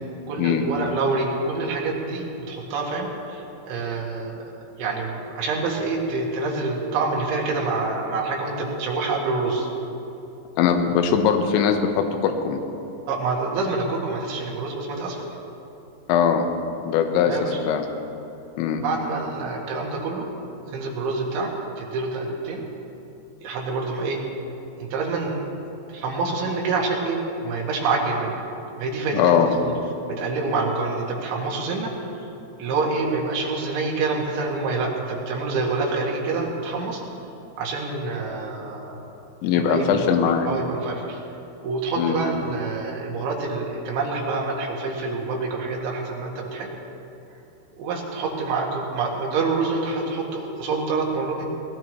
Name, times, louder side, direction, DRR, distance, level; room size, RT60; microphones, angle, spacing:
voice 1, 0.3-4.5 4.8-9.7 13.1-15.2 17.3-17.6 18.8-20.3 20.7-21.5 21.8-22.6 23.4-24.2 24.8-25.4 25.9-28.4 28.8-29.7 30.1-32.3 32.6-37.0 37.6-39.0 39.5-41.2 41.6-46.7 47.8-51.4, right 3 dB, 70° right, -3 dB, 4.0 m, -27 dB
voice 2, 10.6-12.6 16.1-16.5 16.8-17.4 17.7-17.8 18.6-18.8 29.1-29.5 39.4-40.5 42.0-42.2, left 7 dB, 75° left, 5 dB, 3.1 m, -20 dB
20.5 x 17.5 x 3.1 m, 2.9 s
omnidirectional pair, 6.0 m